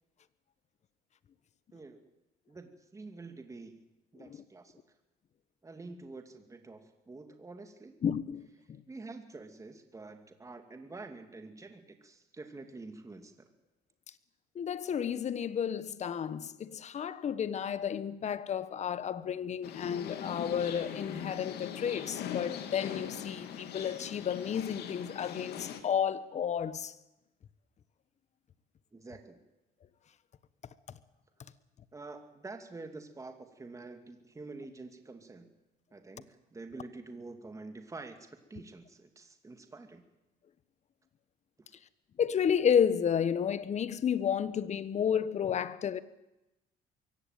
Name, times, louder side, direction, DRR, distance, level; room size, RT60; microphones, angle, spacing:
voice 1, 1.7-2.0 2.5-3.8 4.1-4.8 5.6-7.9 8.9-13.5 28.9-29.4 31.9-35.5 35.9-40.0 41.6-41.7, right 3 dB, 20° right, 2.4 m, -47 dB
voice 2, 8.0-8.5 14.5-26.9 42.2-46.0, left 8 dB, 40° left, 1.2 m, -31 dB
sound 1, 19.6-25.8, left 9 dB, 75° left, 2.7 m, -41 dB
23.0 x 16.5 x 9.1 m
cardioid pair, 110°, 17 cm